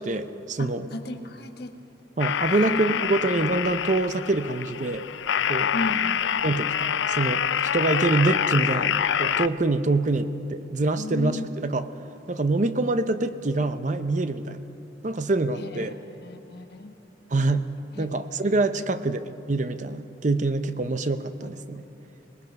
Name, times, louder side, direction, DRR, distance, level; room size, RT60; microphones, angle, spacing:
voice 1, 0.0-0.9 2.2-5.1 5.5-5.7 6.4-7.4 7.7-11.9 12.3-14.6 15.0-16.0 17.3-17.7 18.0-19.2 19.5-21.8, right 2 dB, 40° right, 11 dB, 0.6 m, -25 dB
voice 2, 0.6-1.7 2.5-3.0 5.7-6.2 11.0-11.4 15.6-17.0 17.9-18.1 18.4-18.7 21.4-21.8, left 2 dB, 55° left, 6 dB, 1.4 m, -35 dB
sound 1, 2.2-9.5, left 8 dB, 75° left, 0.5 m, -26 dB
25.5 x 19.5 x 5.3 m, 2.9 s
head